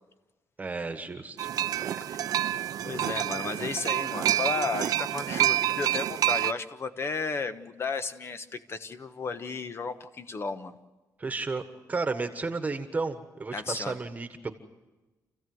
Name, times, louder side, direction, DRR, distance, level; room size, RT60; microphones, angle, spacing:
voice 1, 0.6-1.5 1.8-2.0 11.2-11.6 11.9-14.5, right 3 dB, 25° right, 7 dB, 1.5 m, -33 dB
sound 1, 1.4-6.5, right 12 dB, 70° right, 0.6 m, -28 dB
voice 2, 2.8-10.7 13.5-14.0, left 4 dB, 40° left, 10 dB, 1.2 m, -34 dB
28.5 x 15.5 x 7.9 m, 1.2 s
cardioid pair, 115°, 6 cm